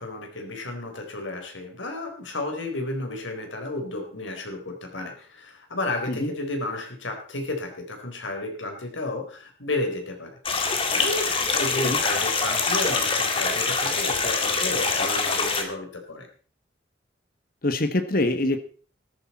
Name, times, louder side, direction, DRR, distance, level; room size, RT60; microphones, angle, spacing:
voice 1, 0.0-16.3, left 2 dB, 80° left, 4 dB, 3.9 m, -32 dB
sound 1, 10.5-15.6, left 4 dB, 30° left, 2.0 m, -24 dB
voice 2, 17.6-18.6, left 2 dB, 50° left, 9 dB, 1.6 m, -24 dB
14.5 x 13.5 x 4.3 m, 0.42 s
head